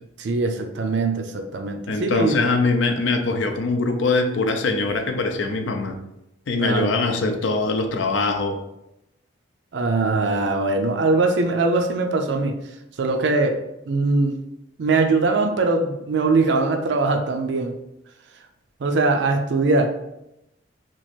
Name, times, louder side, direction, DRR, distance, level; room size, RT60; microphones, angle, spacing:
voice 1, 0.2-2.4 6.6-7.0 9.7-12.6 13.0-13.6 13.9-14.4 14.8-17.8 18.8-19.9, right 3 dB, 65° right, 4 dB, 0.4 m, -21 dB
voice 2, 1.9-6.0 6.5-8.6, left 3 dB, 75° left, 5 dB, 0.5 m, -22 dB
2.9 x 2.5 x 4.3 m, 0.86 s
head